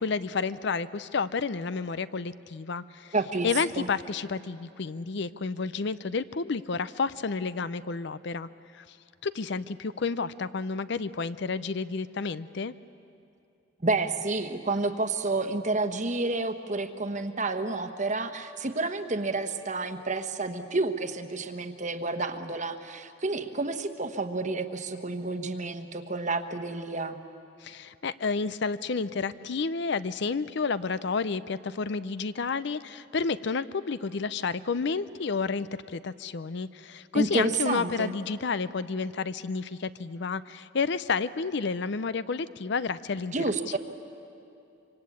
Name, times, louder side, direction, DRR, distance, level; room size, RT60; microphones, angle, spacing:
voice 1, 0.0-3.1 3.4-8.5 8.7-8.8 9.2-12.7 27.6-43.3, left 4 dB, 60° left, 15 dB, 0.6 m, -30 dB
voice 2, 3.1-3.9 13.8-27.2 37.1-38.1 43.3-43.8, right 3 dB, 35° right, 8 dB, 1.2 m, -30 dB
25.5 x 25.0 x 8.5 m, 2.6 s
head